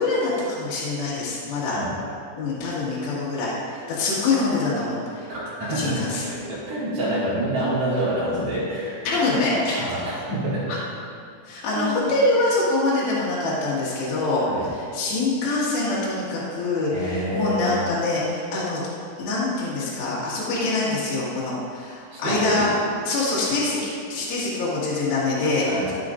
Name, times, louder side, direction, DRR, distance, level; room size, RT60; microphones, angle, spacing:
voice 1, 0.0-1.8 2.4-5.3 5.7-6.2 9.1-9.8 10.7-10.8 11.5-14.4 14.7-18.8 19.2-22.7 23.0-23.8 24.1-25.9, left 2 dB, 70° left, -8 dB, 4.1 m, -24 dB
voice 2, 5.3-9.1 9.7-10.7 11.7-12.1 14.5-14.7 16.9-17.8 22.1-22.7 25.7-25.9, right 1 dB, 45° right, -8 dB, 2.3 m, -27 dB
12.5 x 8.3 x 2.6 m, 2.3 s
omnidirectional pair, 5.3 m